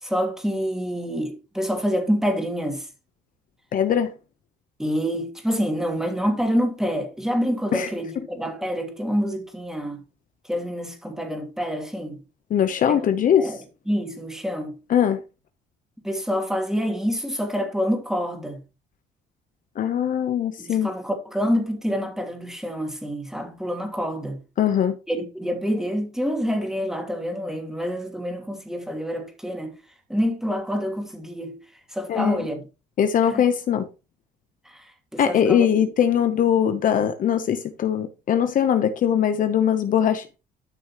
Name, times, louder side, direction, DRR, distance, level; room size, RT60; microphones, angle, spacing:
voice 1, 0.0-2.9 4.8-10.0 10.5-12.2 12.9-13.0 13.4-13.6 13.9-14.8 16.0-18.6 20.6-24.4 25.1-29.7 30.1-31.6 31.9-32.6 33.3-33.4 34.6-35.9, equal, 5° right, 3.0 m, -27 dB
voice 2, 3.7-4.1 7.7-7.9 12.5-13.5 14.9-15.2 19.8-20.9 24.6-25.0 32.1-32.5 33.0-33.9 35.2-40.3, left 9 dB, 50° left, 1.0 m, -21 dB
13.0 x 6.3 x 3.1 m
cardioid pair, 110°, 17 cm